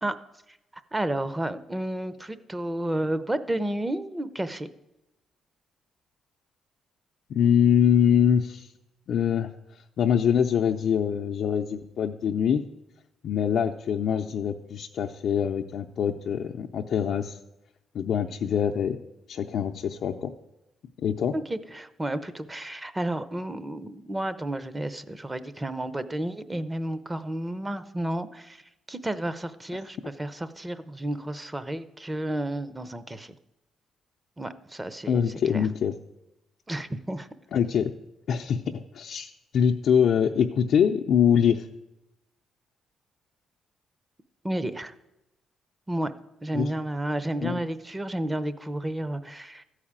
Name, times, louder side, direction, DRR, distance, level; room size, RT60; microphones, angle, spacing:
voice 1, 0.7-4.7 21.3-28.6 28.9-33.3 34.4-35.7 36.7-37.3 44.4-44.9 45.9-46.1 46.4-49.6, right 1 dB, 15° right, 13 dB, 0.7 m, -31 dB
voice 2, 7.3-8.7 9.1-9.5 10.0-12.6 13.2-17.4 17.9-19.0 19.3-20.3 21.0-21.3 35.1-35.9 37.5-37.9 38.3-41.6 46.5-46.7 47.4-47.6, left 8 dB, 70° left, 1 dB, 0.6 m, -24 dB
13.5 x 4.9 x 8.7 m, 0.92 s
cardioid pair, 90°, 0 cm